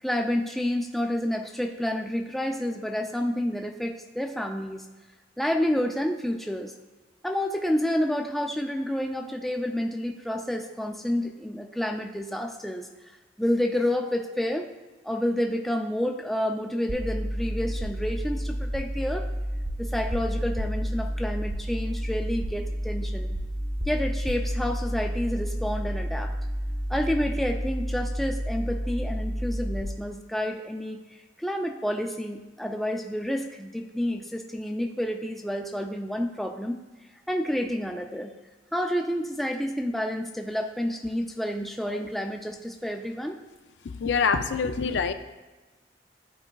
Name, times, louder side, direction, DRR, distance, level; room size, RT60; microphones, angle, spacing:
voice 1, 0.0-4.9 5.4-6.7 7.2-12.9 13.4-14.7 15.0-19.2 19.8-23.3 23.9-26.3 26.9-36.8 37.3-38.3 38.7-43.4, equal, ahead, 2 dB, 0.4 m, -29 dB
sound 1, 16.9-29.8, equal, 25° right, 1.0 m, -30 dB
voice 2, 43.9-45.1, left 5 dB, 80° left, 9 dB, 0.4 m, -26 dB
11.5 x 4.8 x 2.3 m, 1.2 s
head